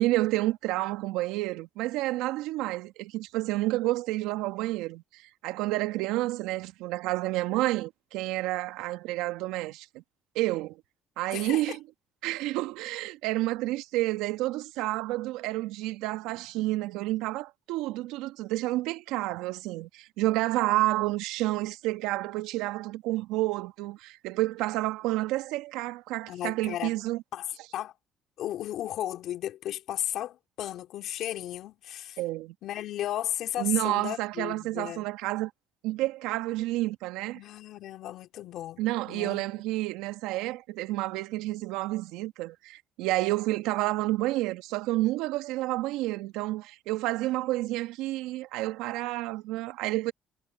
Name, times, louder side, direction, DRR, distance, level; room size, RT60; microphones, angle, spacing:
voice 1, 0.0-10.0 10.3-10.8 11.2-11.8 12.2-27.2 32.2-32.5 33.6-35.5 35.8-37.4 38.8-50.1, right 18 dB, 80° right, 1.7 m, -30 dB
voice 2, 11.3-11.8 26.3-26.9 27.3-27.9 28.4-32.2 32.6-35.1 37.3-39.4, left 12 dB, 70° left, 2.4 m, -35 dB
supercardioid pair, 65°, 0 cm